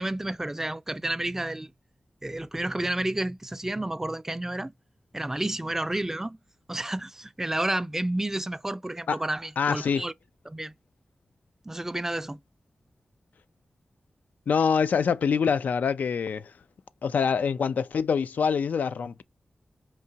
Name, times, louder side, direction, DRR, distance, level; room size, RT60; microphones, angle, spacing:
voice 1, 0.0-1.7 2.2-4.7 5.1-6.4 6.7-10.1 10.5-10.8 11.7-12.4, right 1 dB, 15° right, 0.3 m, -30 dB
voice 2, 9.6-10.1 14.5-16.5 17.0-19.2, left 6 dB, 85° left, 0.3 m, -25 dB
4.6 x 2.8 x 2.7 m
cardioid pair, 55°, 3 cm